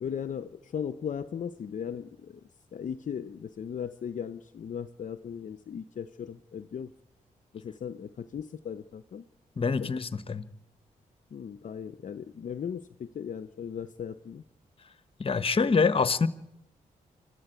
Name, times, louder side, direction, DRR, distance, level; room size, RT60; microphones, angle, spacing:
voice 1, 0.0-2.4 2.7-6.9 7.5-9.2 9.8-9.9 11.3-14.4, left 7 dB, 60° left, 0.8 m, -37 dB
voice 2, 9.6-10.4 15.2-16.3, left 5 dB, 40° left, 1.2 m, -25 dB
25.0 x 13.0 x 9.0 m
cardioid pair, 65°, 15 cm